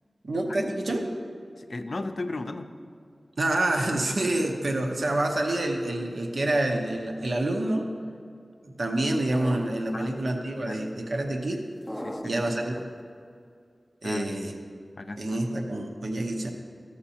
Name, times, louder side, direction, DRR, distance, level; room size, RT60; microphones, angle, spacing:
voice 1, 0.2-1.0 3.4-7.9 8.6-11.6 12.2-12.7 14.0-14.5 15.2-16.5, right 1 dB, 80° right, 2 dB, 0.9 m, -27 dB
voice 2, 1.6-2.7 9.9-11.0 12.0-12.4 14.0-14.3 15.0-15.2, left 2 dB, 65° left, 7 dB, 0.5 m, -36 dB
sound 1, 9.3-10.2 11.9-12.8, equal, 5° left, 0.5 m, -37 dB
13.5 x 6.6 x 2.8 m, 2.3 s
wide cardioid pair, 60°, 0 cm